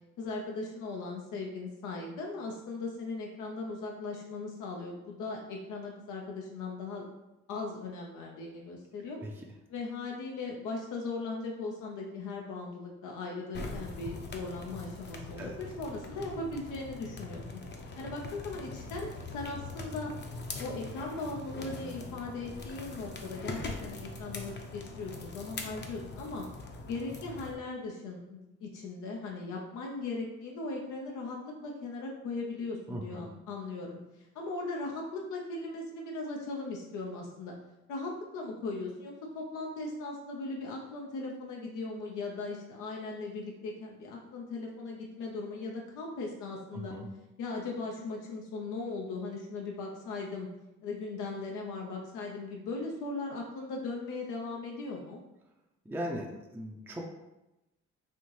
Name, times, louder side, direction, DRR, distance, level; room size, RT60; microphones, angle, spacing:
voice 1, 0.2-7.0 7.5-9.2 9.7-17.6 18.0-20.1 20.6-26.5 26.9-34.0 34.3-37.5 37.9-46.9 47.4-50.5 50.8-55.2, left 3 dB, 90° left, 0 dB, 0.6 m, -38 dB
sound 1, 13.5-27.5, left 3 dB, 35° left, 0.6 m, -42 dB
voice 2, 32.9-33.3 46.7-47.1 55.9-57.0, equal, 10° right, 0 dB, 0.4 m, -38 dB
4.3 x 2.6 x 3.1 m, 0.97 s
cardioid pair, 90°, 30 cm